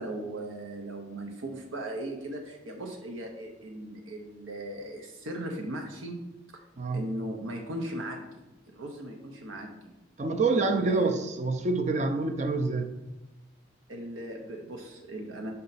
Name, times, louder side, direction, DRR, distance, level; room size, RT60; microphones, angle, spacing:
voice 1, 0.0-6.2 6.5-6.6 6.9-10.0 10.4-11.2 13.9-15.5, right 1 dB, 85° right, 0.8 m, -38 dB
voice 2, 10.2-12.9, right 3 dB, 35° right, 0.5 m, -27 dB
5.5 x 5.3 x 4.0 m
head